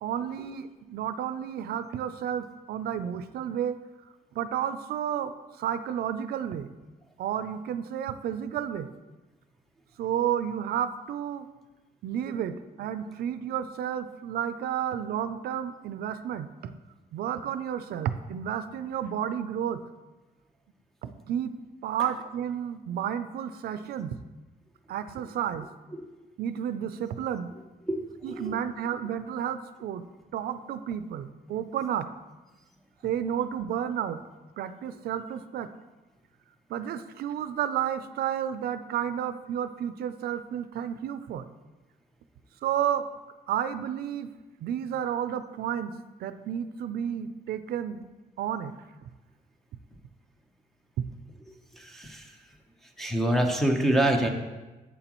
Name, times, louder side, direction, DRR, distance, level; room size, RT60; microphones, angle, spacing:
voice 1, 0.0-3.8 4.3-5.3 5.6-6.7 7.2-8.9 10.0-11.5 12.0-16.7 17.1-19.8 21.0-21.5 21.8-24.2 24.9-25.7 26.4-27.5 28.2-30.0 30.3-32.1 33.0-34.2 34.6-35.7 36.7-41.5 42.6-43.0 43.5-44.3 44.6-48.0 48.4-48.7 51.0-51.1, right 9 dB, 80° right, 11 dB, 0.5 m, -31 dB
voice 2, 27.9-28.5 51.7-52.4 53.0-54.3, right 1 dB, ahead, 4 dB, 0.7 m, -26 dB
11.0 x 8.4 x 3.0 m, 1.2 s
cardioid pair, 175°, 16 cm